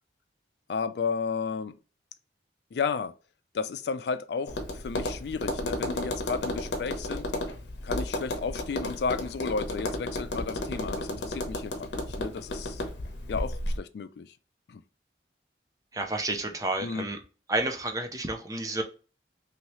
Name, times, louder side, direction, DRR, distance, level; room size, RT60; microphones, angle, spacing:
voice 1, 0.7-1.7 2.7-3.1 3.5-7.3 7.8-12.8 13.3-14.4 14.7-14.8 16.8-17.1, left 5 dB, 65° left, 0.3 m, -33 dB
Tap, 4.5-13.8, left 1 dB, 85° left, 0.8 m, -33 dB
voice 2, 15.9-17.2 17.5-18.8, right 2 dB, 20° right, 0.4 m, -30 dB
2.9 x 2.7 x 3.0 m
head